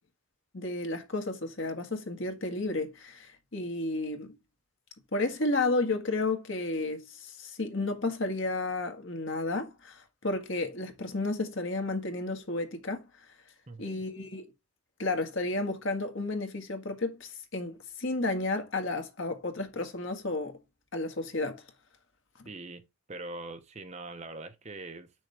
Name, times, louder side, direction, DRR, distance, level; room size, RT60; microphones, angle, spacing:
voice 1, 0.5-4.4 5.1-13.0 13.8-14.5 15.0-20.6 20.9-21.6 22.4-22.5, left 2 dB, 60° left, 1.8 m, -32 dB
voice 2, 13.7-14.1 22.5-25.1, right 2 dB, 30° right, 1.0 m, -43 dB
9.1 x 6.3 x 3.5 m
head